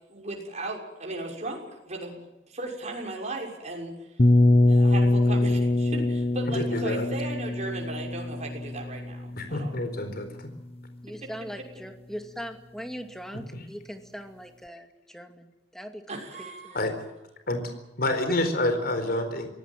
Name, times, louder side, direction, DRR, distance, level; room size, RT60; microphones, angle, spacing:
voice 1, 0.1-2.2 2.5-4.2 4.7-9.8 11.2-11.3 11.6-11.7 16.1-16.8, right 2 dB, 40° right, 0 dB, 6.3 m, -36 dB
sound 1, 4.2-10.0, left 1 dB, 35° left, 1.0 m, -23 dB
voice 2, 6.5-7.1 9.3-10.5 13.5-13.7 16.7-16.9 17.5-17.6 18.0-19.5, left 1 dB, 55° left, 7 dB, 4.3 m, -28 dB
voice 3, 11.0-16.0 16.4-16.8, equal, ahead, 6 dB, 2.4 m, -40 dB
24.0 x 18.0 x 9.2 m, 1.0 s
head